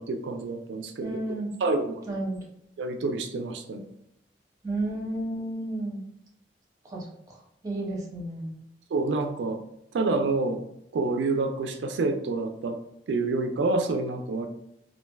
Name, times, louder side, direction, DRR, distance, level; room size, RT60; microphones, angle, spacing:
voice 1, 0.0-1.2 1.6-2.2 2.8-3.9 8.9-9.6 9.9-10.6 10.9-12.8 13.1-14.5, right 3 dB, 80° right, 7 dB, 0.3 m, -28 dB
voice 2, 1.0-1.5 2.1-2.4 4.6-6.1 6.9-7.0 7.6-8.6, right 1 dB, 20° right, -3 dB, 0.6 m, -32 dB
3.2 x 2.5 x 2.2 m, 0.77 s
head